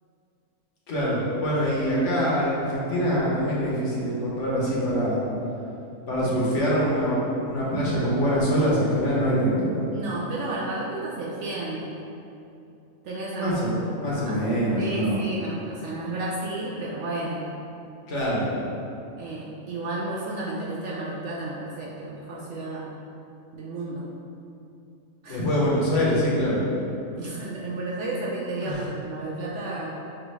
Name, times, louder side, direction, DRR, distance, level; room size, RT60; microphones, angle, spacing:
voice 1, 0.9-5.2 6.1-9.7 13.3-15.2 18.1-18.5 25.3-26.6 28.6-28.8, equal, 60° left, -6 dB, 1.1 m, -24 dB
voice 2, 9.9-11.9 13.0-13.6 14.2-14.4 14.8-17.4 19.2-22.9 23.5-24.1 25.2-25.5 27.2-29.9, right 2 dB, 65° right, -5 dB, 0.7 m, -32 dB
6.0 x 2.4 x 3.1 m, 2.7 s
omnidirectional pair, 1.5 m